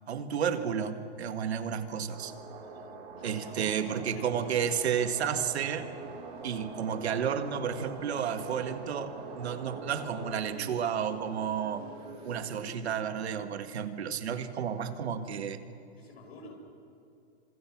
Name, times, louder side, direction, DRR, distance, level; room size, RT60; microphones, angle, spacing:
voice 1, 0.1-2.3 3.2-5.9 6.4-11.9 12.2-15.6, right 8 dB, 75° right, 8 dB, 2.0 m, -32 dB
sound 1, 2.1-10.3, right 4 dB, 50° right, 6.6 m, -44 dB
voice 2, 3.2-4.8 16.0-16.6, left 2 dB, 70° left, 1 dB, 6.9 m, -51 dB
sound 2, 5.7-13.0, right 3 dB, 20° right, 6.4 m, -49 dB
27.5 x 26.5 x 6.1 m, 2.5 s
hypercardioid pair, 175°, 32 cm